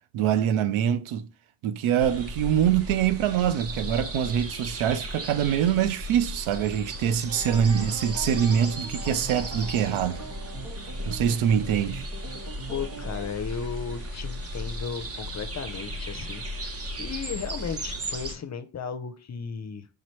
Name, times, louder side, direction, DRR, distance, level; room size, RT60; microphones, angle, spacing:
voice 1, 0.1-1.2 1.6-10.2 11.1-12.1, right 9 dB, 85° right, 0.6 m, -24 dB
sound 1, 2.0-18.4, equal, 30° right, 0.7 m, -36 dB
sound 2, 7.3-13.3, right 3 dB, 65° right, 1.8 m, -42 dB
voice 2, 12.7-19.9, left 6 dB, 35° left, 0.5 m, -35 dB
5.1 x 2.9 x 3.1 m
cardioid pair, 105°, 48 cm